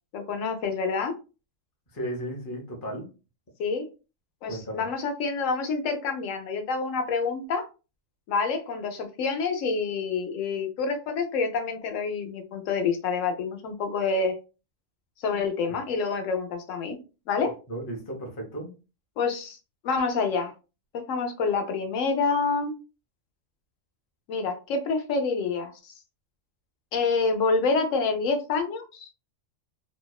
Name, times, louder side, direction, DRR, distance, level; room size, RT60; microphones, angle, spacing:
voice 1, 0.1-1.1 3.6-3.9 4.4-7.7 8.3-14.4 15.2-17.0 17.3-17.5 19.2-19.6 19.8-20.5 20.9-22.7 24.3-25.9 26.9-29.1, left 4 dB, 75° left, 6 dB, 0.9 m, -27 dB
voice 2, 1.9-3.1 4.4-4.8 15.7-15.8 17.7-18.7, right 1 dB, 25° left, 1 dB, 0.5 m, -35 dB
2.7 x 2.1 x 2.2 m, 0.32 s
omnidirectional pair, 1.3 m